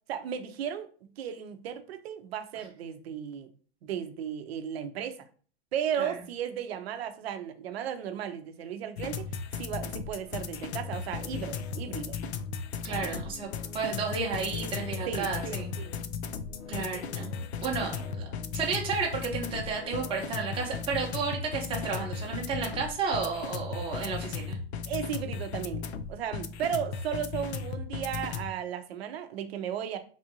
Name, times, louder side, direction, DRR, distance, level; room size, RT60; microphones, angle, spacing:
voice 1, 0.1-3.5 3.8-5.2 5.7-9.3 9.6-12.2 12.9-13.1 15.1-15.9 24.9-25.8 26.1-30.0, right 9 dB, 65° right, 9 dB, 0.7 m, -35 dB
sound 1, 9.0-28.5, left 6 dB, 75° left, 0.5 m, -36 dB
voice 2, 12.8-15.7 16.7-24.6, right 5 dB, 15° right, -1 dB, 0.8 m, -32 dB
3.4 x 2.5 x 2.7 m, 0.42 s
hypercardioid pair, 135°, 33 cm